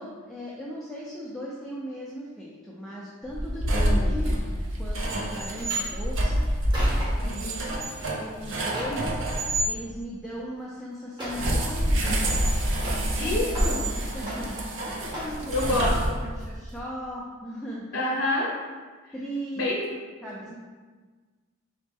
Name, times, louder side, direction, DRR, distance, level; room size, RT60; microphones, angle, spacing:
voice 1, 0.0-6.5 7.2-7.7 8.0-9.2 9.6-12.4 13.2-13.6 14.1-15.6 16.3-18.0 19.1-19.8 20.2-20.5, equal, ahead, -6 dB, 0.4 m, -38 dB
sound 1, 3.3-9.7 11.3-16.5, right 1 dB, 65° right, 0.6 m, -27 dB
voice 2, 3.7-4.1 7.2-7.7 13.2-13.8 15.5-16.2 17.9-18.5 19.0-19.1 19.5-19.8 20.2-20.5, left 2 dB, 65° left, -4 dB, 0.7 m, -28 dB
sound 2, 5.3-5.9 6.5-7.3 7.8-8.1 8.4-9.0 10.4-10.5 11.2-11.5 11.8-13.2 13.5-14.0 14.3-14.7 15.1-15.4 15.9-16.1 16.4-16.5, equal, 20° right, 1.3 m, -37 dB
4.1 x 3.2 x 3.4 m, 1.4 s
head